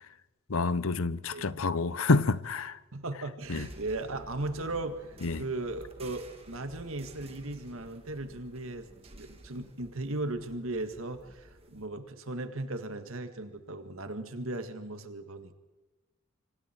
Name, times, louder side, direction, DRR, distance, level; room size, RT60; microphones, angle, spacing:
voice 1, 0.5-2.8 3.5-3.7 5.2-5.4, left 3 dB, 75° left, 0.8 m, -28 dB
voice 2, 1.3-1.7 2.9-15.5, right 2 dB, 70° right, 1.8 m, -37 dB
sound 1, 3.4-11.9, right 1 dB, 25° right, 2.5 m, -51 dB
27.0 x 25.0 x 4.5 m
head